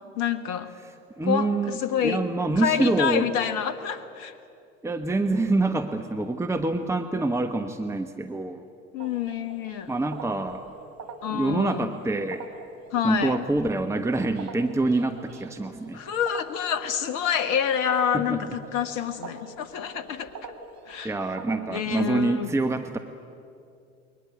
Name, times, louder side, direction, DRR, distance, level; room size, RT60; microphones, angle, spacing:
voice 1, 0.2-0.7 1.2-2.2 2.6-4.3 8.9-9.9 11.2-11.9 12.9-13.4 15.9-20.3 20.9-21.1 21.7-22.5, left 8 dB, 50° left, 11 dB, 1.5 m, -27 dB
voice 2, 1.2-3.3 4.8-8.7 9.9-10.6 11.3-12.5 13.0-16.0 18.1-18.6 21.0-23.0, right 2 dB, 5° right, 6 dB, 1.2 m, -26 dB
sound 1, 9.0-21.6, right 5 dB, 45° right, 3.4 m, -44 dB
29.0 x 22.5 x 8.3 m, 2.5 s
figure-of-eight pair, 70°, 39 cm